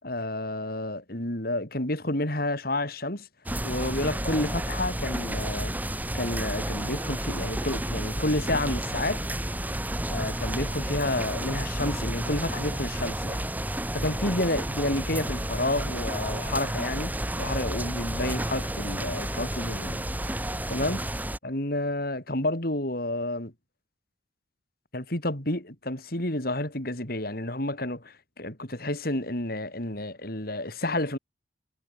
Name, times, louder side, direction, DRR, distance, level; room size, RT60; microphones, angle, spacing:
voice 1, 0.0-3.3 3.6-5.7 6.1-9.2 10.1-13.5 13.9-17.1 17.4-20.0 20.7-21.1 21.4-23.5 24.9-31.2, left 1 dB, 55° left, 5.5 m, -30 dB
sound 1, 3.5-21.4, right 1 dB, 10° right, 3.2 m, -31 dB
head